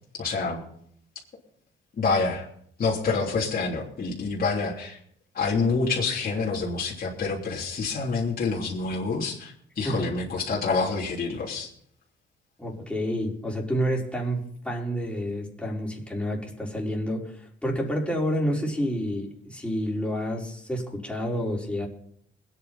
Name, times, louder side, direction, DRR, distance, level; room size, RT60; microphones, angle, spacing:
voice 1, 0.2-0.6 2.0-2.5 2.8-5.0 5.3-11.7, left 4 dB, 50° left, -3 dB, 3.3 m, -27 dB
voice 2, 12.6-21.9, equal, 5° left, -3 dB, 4.6 m, -29 dB
21.0 x 9.4 x 4.3 m, 0.66 s
cardioid pair, 90°, 20 cm